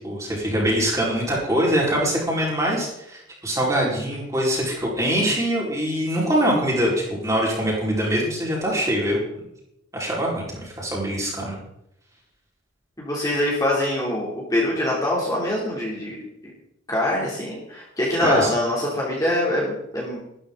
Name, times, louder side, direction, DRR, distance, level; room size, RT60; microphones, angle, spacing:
voice 1, 0.0-9.2 9.9-11.6 18.2-18.5, equal, 15° right, -4 dB, 5.0 m, -23 dB
voice 2, 13.0-16.2 16.9-20.2, left 1 dB, 15° left, -5 dB, 3.4 m, -24 dB
14.0 x 13.5 x 4.0 m, 0.80 s
head